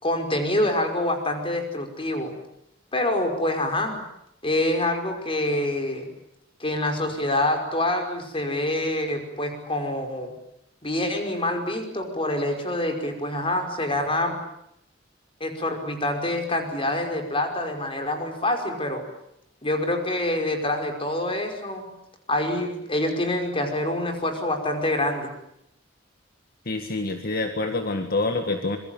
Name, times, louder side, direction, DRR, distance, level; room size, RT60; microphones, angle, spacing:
voice 1, 0.0-2.3 2.9-4.0 4.4-6.1 6.6-10.3 10.8-14.4 15.4-19.0 19.6-21.8 22.3-25.3, left 1 dB, 30° left, 5 dB, 5.4 m, -26 dB
voice 2, 26.7-28.8, left 2 dB, 55° left, 6 dB, 1.9 m, -26 dB
26.0 x 23.0 x 9.1 m, 0.77 s
head